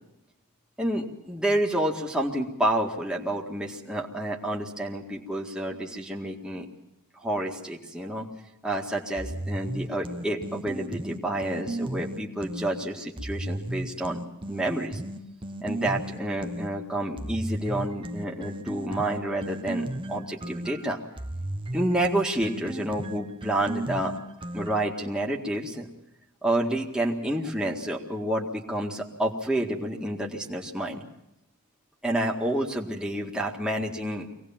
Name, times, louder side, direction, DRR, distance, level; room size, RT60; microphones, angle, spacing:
voice 1, 0.8-6.7 7.2-8.3 8.6-14.2 14.5-15.0 15.6-21.0 21.7-24.1 24.4-25.9 26.4-31.0 32.0-34.3, right 1 dB, 5° right, -1 dB, 1.9 m, -29 dB
sound 1, 9.2-12.7 13.2-16.7 17.2-25.0, right 1 dB, 20° right, 0.9 m, -35 dB
24.0 x 18.5 x 7.3 m, 0.89 s
head